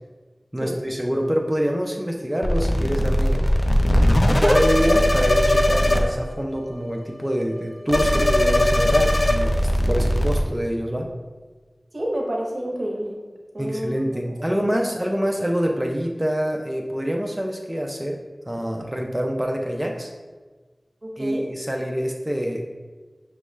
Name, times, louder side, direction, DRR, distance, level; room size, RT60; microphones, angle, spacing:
voice 1, 0.5-3.5 4.3-11.1 13.6-18.2 18.5-20.1 21.2-22.6, equal, 15° right, 1 dB, 0.4 m, -26 dB
sound 1, 2.4-6.0 6.3-6.6 6.9-7.0 7.3-7.6 7.9-10.4, left 1 dB, 55° left, 0.5 m, -19 dB
voice 2, 11.9-13.2 13.5-14.0 14.4-14.5 21.0-21.5, right 1 dB, 65° right, -1 dB, 0.9 m, -28 dB
6.2 x 2.3 x 3.1 m, 1.3 s
wide cardioid pair, 40°, 0 cm